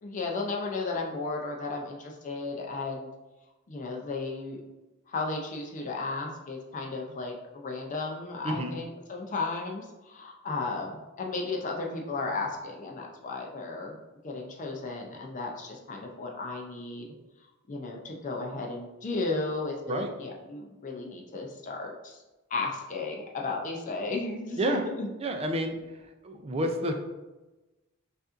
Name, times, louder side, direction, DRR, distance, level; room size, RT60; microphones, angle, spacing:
voice 1, 0.0-3.1 3.7-4.6 5.1-17.1 17.7-22.2 22.5-25.1, left 3 dB, 35° left, 1 dB, 0.4 m, -34 dB
voice 2, 25.2-25.8 26.2-26.9, right 1 dB, 30° right, 4 dB, 0.4 m, -29 dB
5.2 x 2.5 x 2.5 m, 1.1 s
head